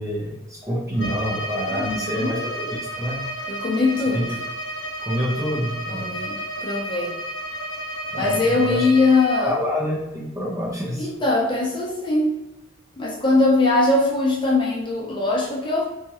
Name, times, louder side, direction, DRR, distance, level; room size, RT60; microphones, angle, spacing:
voice 1, 0.0-3.5 4.1-4.2 5.0-6.1 8.1-8.8 9.4-11.1, equal, 15° right, -4 dB, 0.6 m, -27 dB
Bowed string instrument, 0.9-9.5, right 1 dB, 60° left, 0.7 m, -32 dB
voice 2, 1.8-2.4 3.5-4.2 5.9-6.3 6.6-7.1 8.2-9.5 11.0-12.4 13.0-15.9, left 3 dB, 25° left, -4 dB, 0.7 m, -21 dB
4.3 x 2.4 x 2.9 m, 0.95 s
head